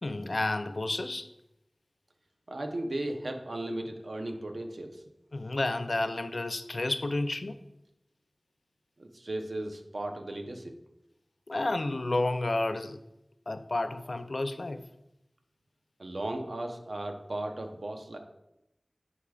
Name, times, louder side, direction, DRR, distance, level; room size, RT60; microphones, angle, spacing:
voice 1, 0.0-1.3 5.3-7.6 11.5-13.0 13.5-14.8, left 2 dB, 70° left, 0.4 m, -31 dB
voice 2, 2.5-5.0 9.0-10.7 16.0-18.2, right 1 dB, 80° right, 0.7 m, -36 dB
9.7 x 4.8 x 2.4 m
wide cardioid pair, 55°, 0 cm